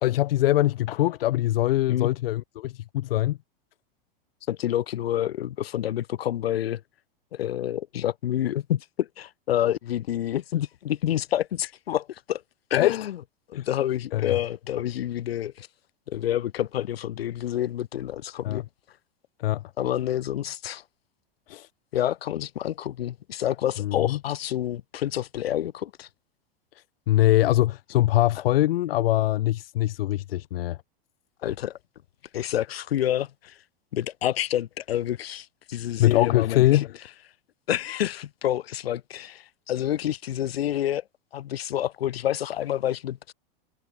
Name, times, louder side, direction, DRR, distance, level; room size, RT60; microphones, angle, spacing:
voice 1, 0.0-3.4 12.8-13.0 13.5-13.6 14.1-14.3 18.4-18.6 19.4-19.6 21.5-21.7 23.8-24.2 27.1-30.8 36.0-37.0, left 15 dB, 75° left, 2.5 m, -23 dB
voice 2, 4.5-6.8 7.3-12.4 12.7-13.2 13.5-15.7 16.1-18.6 19.8-20.8 21.9-26.1 31.4-31.8 32.3-33.6 33.9-36.8 37.7-41.0 41.3-43.3, left 11 dB, 90° left, 5.1 m, -28 dB
supercardioid pair, 150°, 29 cm